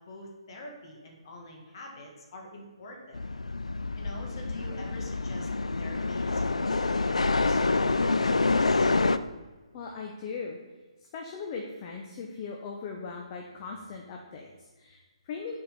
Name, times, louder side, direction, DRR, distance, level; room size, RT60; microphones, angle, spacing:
voice 1, 0.1-3.2 4.0-5.5 5.8-8.9, left 1 dB, 50° left, 1 dB, 1.9 m, -46 dB
sound 1, 3.1-9.2, left 3 dB, 85° left, 0.4 m, -27 dB
voice 2, 9.7-10.6 11.0-15.6, left 5 dB, 35° left, 1 dB, 0.9 m, -39 dB
7.3 x 4.6 x 5.3 m, 1.2 s
figure-of-eight pair, 140°, 3 cm